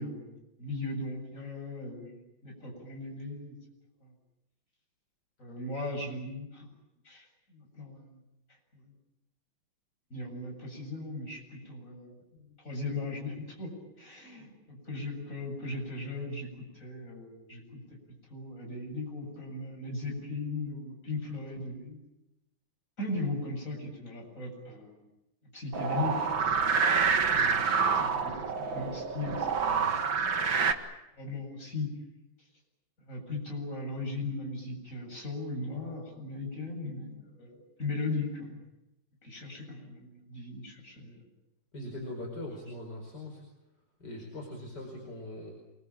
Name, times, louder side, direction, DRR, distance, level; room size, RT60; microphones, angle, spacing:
voice 1, 0.0-3.5 4.0-4.1 5.4-6.7 7.0-8.2 8.8-8.9 10.1-13.7 14.0-18.0 18.3-22.0 23.0-25.1 25.5-26.3 27.9-30.0 30.5-30.6 31.1-31.9 33.1-38.6 39.2-41.3, left 2 dB, 40° left, 1 dB, 8.4 m, -38 dB
sound 1, 25.7-30.7, right 5 dB, 70° right, 2.6 m, -27 dB
voice 2, 41.7-43.4 44.0-45.5, left 1 dB, 55° left, 0 dB, 5.7 m, -41 dB
28.0 x 21.5 x 8.9 m, 0.92 s
omnidirectional pair, 2.2 m